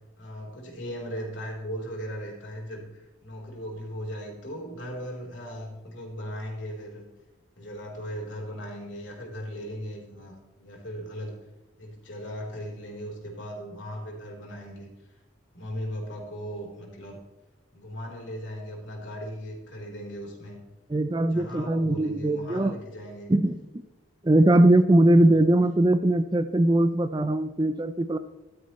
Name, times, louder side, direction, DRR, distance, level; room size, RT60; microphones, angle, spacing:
voice 1, 0.2-7.1 7.6-11.4 11.8-15.2 15.5-17.2 17.7-20.6 21.3-23.3 25.1-25.4, equal, 65° left, -1 dB, 4.0 m, -38 dB
voice 2, 20.9-22.8 23.3-23.8 24.2-28.2, right 1 dB, 20° right, 11 dB, 0.5 m, -21 dB
14.5 x 12.5 x 3.1 m, 1.1 s
head